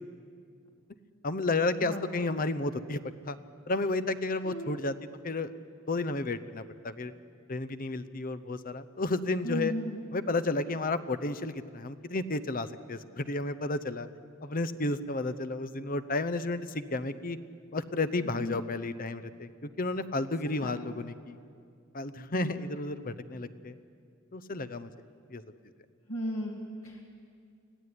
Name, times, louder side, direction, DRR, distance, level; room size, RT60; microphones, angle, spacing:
voice 1, 1.2-3.4 3.7-4.9 5.2-5.5 5.9-7.1 7.5-9.7 10.1-14.1 14.4-17.4 17.7-21.4 21.9-23.7 24.3-24.9 25.3-25.4, left 2 dB, 40° left, 13 dB, 0.8 m, -32 dB
voice 2, 9.4-10.1 18.2-18.6 20.4-20.7 22.3-22.7 26.1-27.0, equal, 85° left, 0 dB, 2.4 m, -36 dB
25.0 x 16.0 x 9.7 m, 2.3 s
head